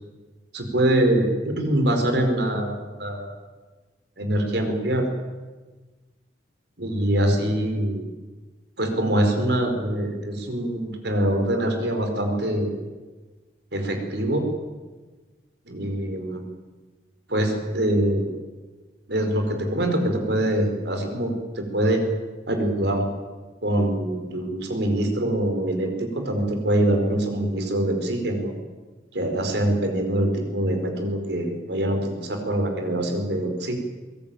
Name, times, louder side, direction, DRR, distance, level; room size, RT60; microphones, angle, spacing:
voice 1, 0.5-3.4 4.2-5.0 6.8-8.1 8.8-12.8 13.7-14.5 15.7-16.4 17.3-18.3 19.1-22.0 22.5-23.1 23.6-28.5 29.1-33.8, right 1 dB, 70° right, 5 dB, 4.6 m, -24 dB
23.0 x 20.0 x 9.1 m, 1.3 s
head